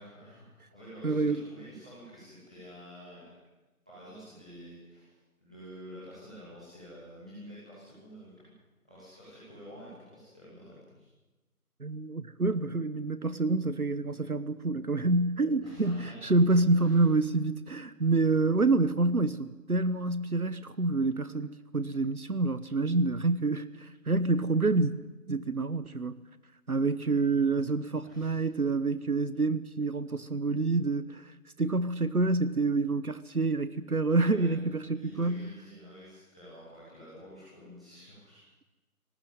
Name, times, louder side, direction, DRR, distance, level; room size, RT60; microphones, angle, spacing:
voice 1, 0.0-3.3 3.8-5.1 5.4-8.3 8.8-11.0 15.6-16.3 16.7-17.1 28.0-28.4 34.1-34.6 34.9-38.4, equal, 5° right, -13 dB, 2.9 m, -49 dB
voice 2, 1.0-1.4 11.8-24.9 25.3-26.2 26.7-31.3 31.6-35.5, right 3 dB, 70° right, 13 dB, 1.3 m, -27 dB
22.5 x 18.5 x 9.5 m, 1.1 s
figure-of-eight pair, 180°, 45 cm